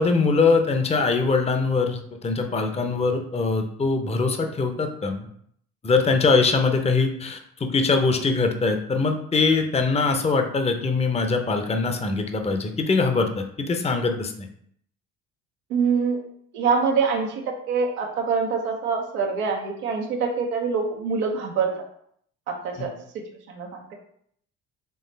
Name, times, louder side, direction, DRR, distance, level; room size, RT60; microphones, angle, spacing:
voice 1, 0.0-5.3 5.8-14.5, left 4 dB, 15° left, 5 dB, 0.6 m, -22 dB
voice 2, 15.7-16.2 16.5-21.7 22.5-22.9 23.5-23.8, right 5 dB, 85° right, 1 dB, 0.8 m, -25 dB
4.5 x 3.1 x 3.2 m, 0.67 s
hypercardioid pair, 55°, 43 cm